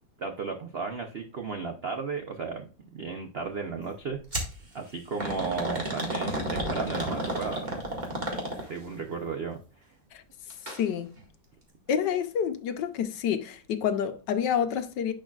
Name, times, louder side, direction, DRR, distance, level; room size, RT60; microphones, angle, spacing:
voice 1, 0.2-4.2 4.7-7.8 8.7-9.6, right 5 dB, 65° right, 0.6 m, -34 dB
sound 1, 4.3-4.5 5.2-8.9 10.5-10.8 11.2-11.3 12.1-12.2, equal, 25° right, 1.9 m, -32 dB
voice 2, 10.7-11.1 11.9-15.1, left 8 dB, 70° left, 1.3 m, -28 dB
10.5 x 4.9 x 2.4 m
omnidirectional pair, 2.1 m